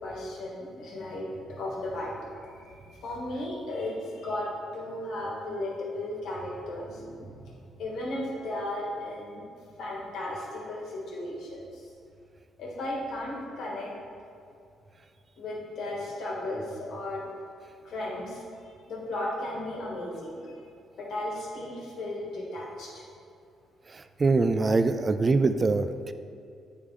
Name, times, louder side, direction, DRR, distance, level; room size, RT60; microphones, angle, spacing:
voice 1, 0.0-7.5 7.8-9.4 9.8-11.8 12.6-13.9 15.4-17.2 17.8-20.6 21.0-23.0, left 1 dB, 75° left, -4 dB, 1.4 m, -35 dB
voice 2, 23.9-25.9, right 3 dB, 30° right, 10 dB, 0.3 m, -23 dB
9.7 x 3.6 x 3.3 m, 2.5 s
cardioid pair, 90°, 0 cm